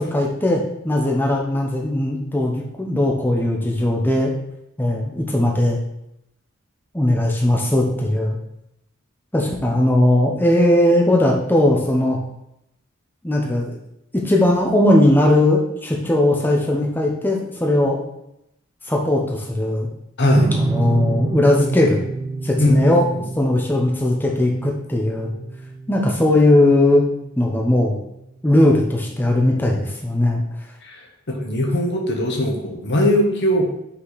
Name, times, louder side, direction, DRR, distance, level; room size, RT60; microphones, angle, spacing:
voice 1, 0.0-4.3 4.8-5.8 6.9-8.4 9.3-12.2 13.2-13.7 14.1-18.0 18.9-19.9 20.5-22.0 22.4-23.1 23.4-25.3 25.9-27.1 27.4-28.0 28.4-30.4, left 1 dB, 10° left, -1 dB, 0.8 m, -18 dB
voice 2, 20.2-20.5 22.6-22.9 30.8-31.0 31.3-33.7, equal, 55° left, 1 dB, 1.2 m, -19 dB
sound 1, 20.3-27.6, right 3 dB, 20° right, 0.3 m, -28 dB
5.7 x 5.0 x 4.0 m, 0.81 s
head